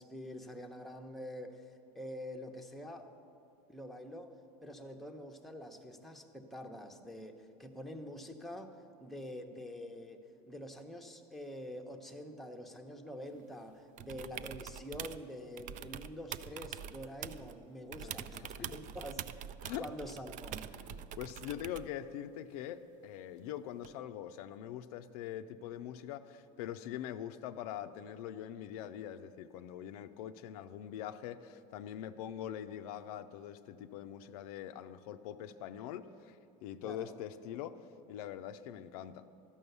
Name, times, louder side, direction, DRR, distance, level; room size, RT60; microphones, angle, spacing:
voice 1, 0.0-1.6 1.9-3.1 3.7-4.4 4.6-19.3 19.8-20.7 36.8-37.1, equal, ahead, 3 dB, 0.8 m, -46 dB
sound 1, 14.0-15.2 15.6-17.6 17.9-22.0 23.8-23.9, right 9 dB, 45° right, 0.4 m, -45 dB
voice 2, 18.0-18.7 19.6-19.9 20.7-36.4 36.6-39.3, left 10 dB, 80° left, 9 dB, 0.5 m, -43 dB
13.0 x 5.5 x 8.0 m, 2.6 s
supercardioid pair, 110°, 19 cm